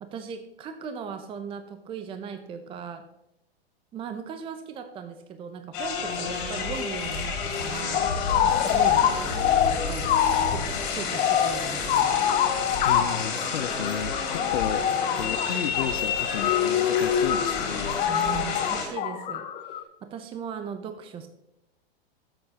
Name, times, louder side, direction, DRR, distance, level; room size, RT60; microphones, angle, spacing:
voice 1, 0.0-3.0 3.9-12.3 18.1-21.3, right 6 dB, 15° right, 8 dB, 0.6 m, -38 dB
sound 1, 5.7-18.9, left 5 dB, 45° left, 2.7 m, -30 dB
sound 2, 7.9-19.8, left 10 dB, 25° left, 0.6 m, -25 dB
voice 2, 12.8-14.9 15.2-18.0, left 9 dB, 85° left, 16 dB, 0.6 m, -33 dB
13.0 x 6.8 x 2.9 m, 0.85 s
hypercardioid pair, 115°, 31 cm